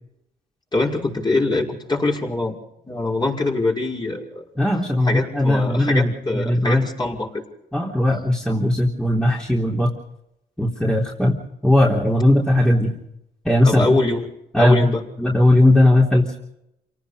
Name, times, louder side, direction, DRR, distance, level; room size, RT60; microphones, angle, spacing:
voice 1, 0.7-2.6 2.8-4.4 5.1-7.4 13.6-14.2 14.6-15.0, left 2 dB, 25° left, -1 dB, 6.0 m, -23 dB
voice 2, 4.6-6.8 7.7-9.9 10.6-12.9 13.5-13.8 14.5-14.9 15.2-16.4, left 1 dB, 5° left, -2 dB, 3.6 m, -18 dB
28.5 x 18.5 x 5.3 m, 0.82 s
cardioid pair, 90°, 18 cm